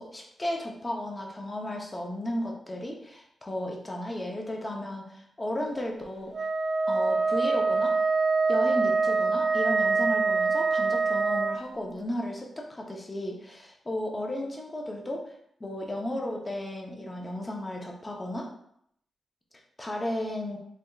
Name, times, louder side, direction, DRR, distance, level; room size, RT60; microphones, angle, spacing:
voice 1, 0.0-6.5 6.9-8.0 8.5-15.3 15.6-18.5 19.8-20.6, left 1 dB, 25° left, 0 dB, 0.6 m, -34 dB
Wind instrument woodwind instrument, 6.3-11.6, right 4 dB, 45° right, 0.3 m, -25 dB
3.3 x 2.8 x 2.3 m, 0.71 s
cardioid pair, 80°, 0 cm